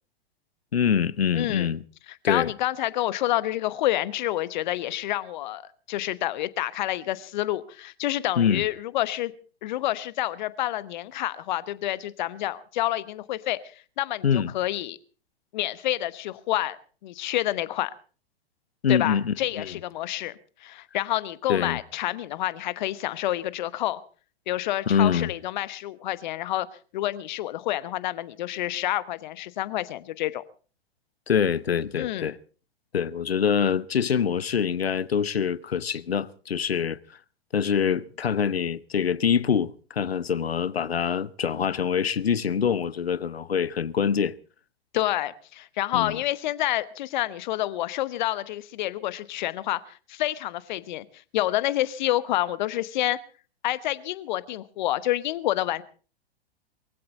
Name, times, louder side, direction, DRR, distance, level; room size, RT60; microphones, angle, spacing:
voice 1, 0.7-1.8 2.2-2.5 8.4-8.6 14.2-14.5 18.8-19.8 21.5-21.8 24.9-25.3 31.3-32.4 32.9-37.0 37.5-44.3 45.9-46.2, left 7 dB, 75° left, 0.8 m, -25 dB
voice 2, 1.3-1.7 2.1-5.6 5.9-9.3 9.6-13.6 14.0-15.0 15.5-17.9 18.9-20.3 20.6-24.0 24.5-26.7 26.9-30.4 32.0-32.3 44.9-51.0 51.3-53.2 53.6-55.8, left 14 dB, 45° left, 1.1 m, -28 dB
22.0 x 16.0 x 4.0 m
figure-of-eight pair, 100°, 31 cm